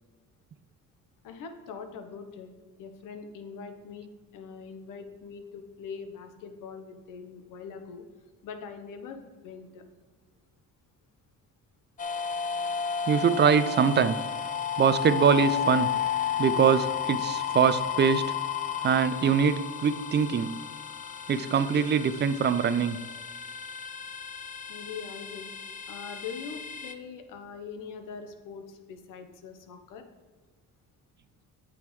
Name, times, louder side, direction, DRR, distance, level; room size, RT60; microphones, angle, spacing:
voice 1, 1.2-2.5 2.8-8.0 8.4-9.8 24.7-25.5 25.9-30.1, left 6 dB, 75° left, 7 dB, 1.1 m, -42 dB
sound 1, 12.0-26.9, left 8 dB, 25° left, 0.5 m, -33 dB
voice 2, 13.1-14.2 14.8-15.9 16.4-18.3 18.8-20.5 21.3-23.0, right 7 dB, 35° right, 13 dB, 0.4 m, -23 dB
8.9 x 7.9 x 3.2 m, 1.4 s
cardioid pair, 115°, 32 cm